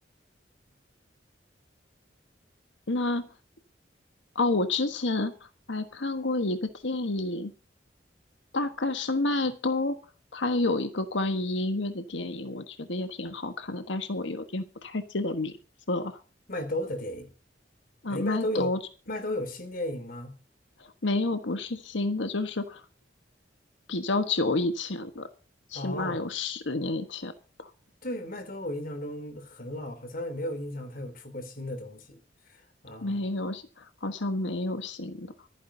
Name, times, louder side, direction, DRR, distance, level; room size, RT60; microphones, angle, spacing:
voice 1, 2.9-3.3 4.3-7.5 8.5-10.0 10.3-15.5 15.9-16.2 18.0-18.8 20.8-22.8 23.9-25.3 25.7-27.3 27.6-27.7 33.0-35.3, left 2 dB, 85° left, 1.4 m, -29 dB
voice 2, 16.5-17.3 18.1-18.7 19.1-20.3 25.7-26.3 28.0-32.2 32.5-33.2, left 1 dB, 50° left, 3.1 m, -34 dB
25.0 x 10.0 x 2.8 m
head